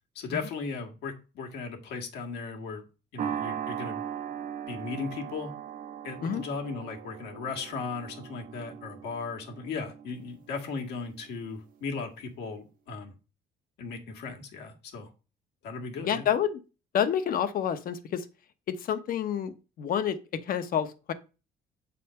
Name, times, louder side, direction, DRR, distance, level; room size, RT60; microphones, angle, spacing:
voice 1, 0.2-2.8 3.1-4.0 4.7-5.5 6.0-13.1 13.8-15.1 15.6-16.3, left 4 dB, 75° left, 2 dB, 1.8 m, -37 dB
sound 1, 3.2-11.7, right 9 dB, 55° right, 1.0 m, -39 dB
voice 2, 16.1-16.6 16.9-18.3 18.7-21.1, left 9 dB, 55° left, 11 dB, 1.0 m, -29 dB
7.5 x 4.1 x 5.6 m, 0.32 s
cardioid pair, 110°, 17 cm